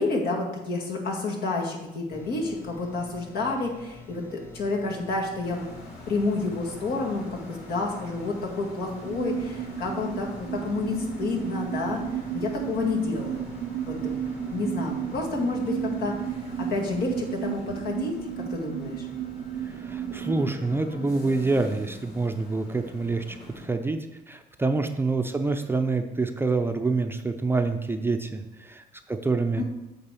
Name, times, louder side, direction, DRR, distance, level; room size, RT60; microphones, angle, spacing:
voice 1, 0.0-5.7 6.1-13.4 13.9-14.2 14.5-19.1 29.6-29.7, left 3 dB, 70° left, -1 dB, 2.1 m, -30 dB
sound 1, 2.1-17.3, left 2 dB, 15° left, 1.5 m, -47 dB
sound 2, 5.4-23.7, left 1 dB, 40° left, 2.9 m, -45 dB
sound 3, 9.0-20.5, right 10 dB, 65° right, 0.5 m, -33 dB
voice 2, 19.6-24.0 24.3-29.6, right 3 dB, 15° right, 6 dB, 0.5 m, -27 dB
8.7 x 4.1 x 6.9 m, 1.0 s
cardioid pair, 110°, 17 cm